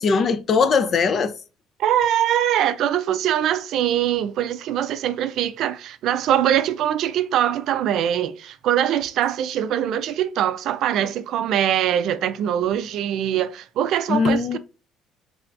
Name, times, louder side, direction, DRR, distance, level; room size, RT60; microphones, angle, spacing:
voice 1, 0.0-1.3 14.1-14.6, left 5 dB, 45° left, 0.5 m, -20 dB
voice 2, 1.8-14.6, right 10 dB, 65° right, 0.4 m, -22 dB
3.4 x 3.3 x 2.5 m
cardioid pair, 115°, 0 cm